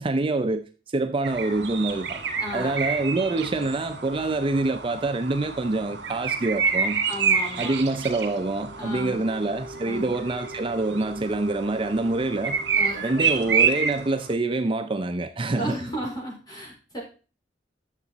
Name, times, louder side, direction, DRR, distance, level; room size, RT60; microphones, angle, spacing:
voice 1, 0.0-2.2 2.5-7.0 7.5-12.6 13.0-15.8, right 2 dB, 30° right, 0.5 m, -26 dB
sound 1, 1.2-14.3, right 6 dB, 75° right, 1.8 m, -29 dB
voice 2, 2.4-2.8 7.1-7.8 8.8-9.3 9.8-10.2 12.8-13.6 15.5-17.0, equal, 25° left, 4.3 m, -34 dB
sound 2, 8.5-13.4, equal, 50° right, 1.3 m, -44 dB
9.9 x 7.0 x 4.0 m
head